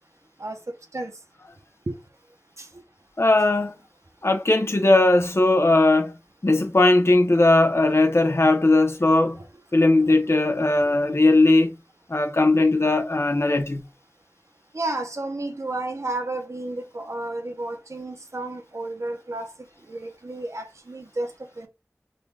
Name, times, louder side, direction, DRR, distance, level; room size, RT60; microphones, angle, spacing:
voice 1, 3.2-3.7 4.2-6.1 6.4-9.4 9.7-11.7 12.1-13.8, left 2 dB, 60° left, 0.8 m, -18 dB
voice 2, 14.7-19.5 19.9-21.3 21.6-21.7, right 2 dB, 85° right, 0.8 m, -31 dB
3.8 x 2.3 x 3.2 m
wide cardioid pair, 40°, 5 cm